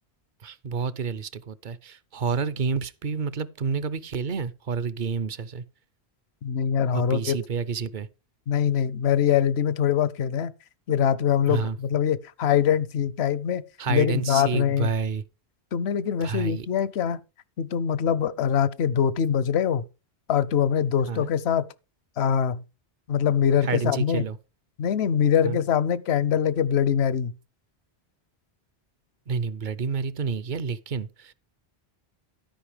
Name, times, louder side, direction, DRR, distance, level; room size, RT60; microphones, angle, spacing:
voice 1, 0.4-5.6 6.9-8.1 11.5-11.8 13.8-15.2 16.2-16.7 21.1-21.3 23.6-24.4 25.4-25.6 29.3-31.3, right 5 dB, 55° right, 0.7 m, -29 dB
voice 2, 6.4-7.4 8.5-10.5 10.9-14.9 15.7-17.2 17.6-19.8 20.3-21.7 22.2-22.6 23.1-24.2 24.8-27.3, left 8 dB, 75° left, 0.9 m, -23 dB
13.0 x 5.2 x 5.0 m
omnidirectional pair, 1.1 m